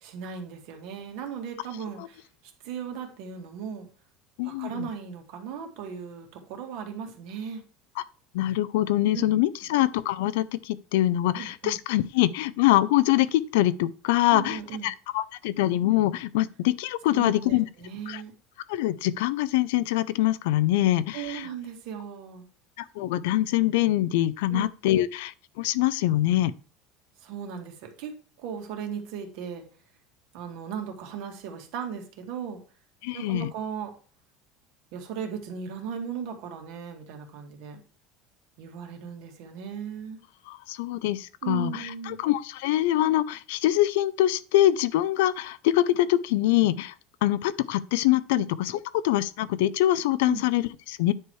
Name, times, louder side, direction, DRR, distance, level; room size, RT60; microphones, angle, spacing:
voice 1, 0.0-2.2 2.6-3.9 4.4-7.6 9.1-9.7 11.4-11.8 14.3-14.9 17.1-18.3 21.1-22.4 24.5-24.6 27.2-28.1 28.4-29.6 30.3-32.6 33.1-33.9 34.9-37.8 38.6-40.2 41.4-42.2 50.2-50.4, right 7 dB, 60° right, 2.1 m, -37 dB
voice 2, 4.4-4.9 8.3-17.6 18.1-18.2 18.7-21.5 22.8-26.5 33.0-33.5 40.5-46.9 47.2-48.7 49.0-51.1, left 14 dB, 90° left, 0.6 m, -24 dB
9.7 x 4.7 x 4.7 m
cardioid pair, 175°, 0 cm